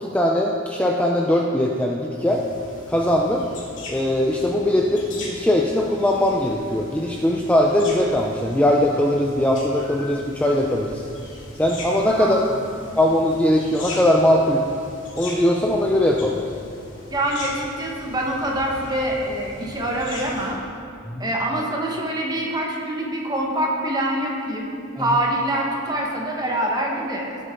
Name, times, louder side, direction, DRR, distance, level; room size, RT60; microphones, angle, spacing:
voice 1, 0.0-2.4 2.9-3.4 3.9-11.0 11.6-12.4 13.0-14.6 15.2-16.4 21.1-21.3, left 1 dB, 5° left, -1 dB, 0.5 m, -20 dB
monkey jungle, 2.3-20.5, left 2 dB, 65° left, 2.4 m, -39 dB
voice 2, 12.2-12.5 17.1-20.6 21.2-24.7 25.0-27.4, right 1 dB, 20° right, -1 dB, 1.5 m, -25 dB
17.0 x 8.1 x 3.9 m, 2.5 s
head